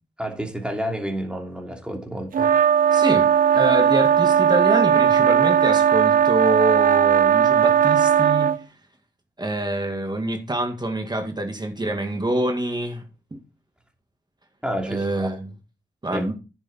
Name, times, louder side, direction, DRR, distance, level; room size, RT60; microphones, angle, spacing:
voice 1, 0.2-2.6 14.6-15.3 16.1-16.2, equal, 5° right, 2.9 m, -30 dB
sound 1, 2.3-8.6, right 8 dB, 45° right, 0.5 m, -17 dB
voice 2, 2.9-8.5 9.4-13.0 13.3-13.4 14.8-15.5 16.0-16.3, right 1 dB, 20° right, 2.0 m, -26 dB
9.9 x 7.5 x 4.2 m
cardioid pair, 70°, 20 cm